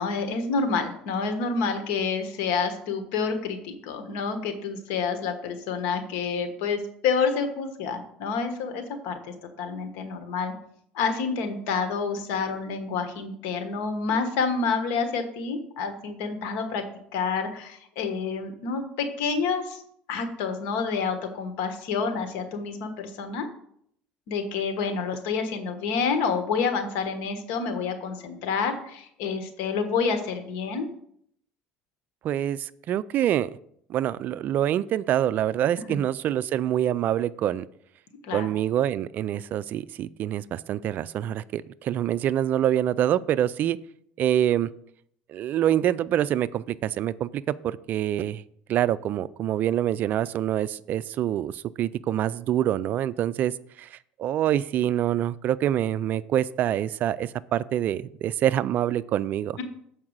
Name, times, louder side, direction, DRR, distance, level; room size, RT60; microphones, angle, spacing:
voice 1, 0.0-10.5 10.9-16.8 17.1-19.8 20.1-23.5 24.3-30.9 35.8-36.0 38.2-38.5, left 5 dB, 75° left, 7 dB, 1.4 m, -28 dB
voice 2, 32.2-33.5 33.9-37.6 38.3-43.8 44.2-44.7 45.3-48.4 48.7-59.6, right 11 dB, 50° right, 18 dB, 0.3 m, -26 dB
7.2 x 4.7 x 6.5 m, 0.68 s
supercardioid pair, 110°, 4 cm